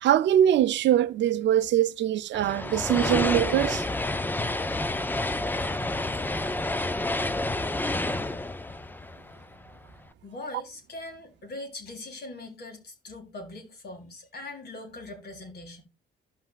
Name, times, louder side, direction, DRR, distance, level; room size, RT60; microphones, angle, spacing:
voice 1, 0.0-3.8, right 11 dB, 65° right, 0.5 m, -23 dB
Fast Train passing R-L, 2.3-9.8, left 2 dB, 10° left, 0.5 m, -29 dB
voice 2, 10.2-15.8, left 2 dB, 55° left, 2.2 m, -41 dB
15.0 x 5.7 x 2.4 m
cardioid pair, 90°, 20 cm